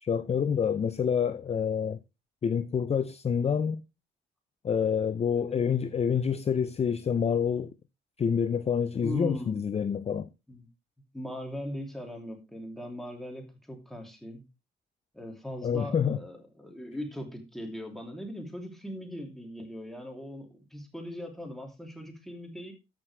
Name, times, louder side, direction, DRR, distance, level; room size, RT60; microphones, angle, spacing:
voice 1, 0.0-2.0 2.4-3.8 4.6-7.7 8.2-10.3 15.6-16.2, left 7 dB, 30° left, 0.5 m, -27 dB
voice 2, 9.0-9.6 10.5-10.7 11.1-14.4 15.1-22.7, equal, ahead, 3.0 m, -39 dB
13.5 x 6.3 x 3.3 m
cardioid pair, 90°, 20 cm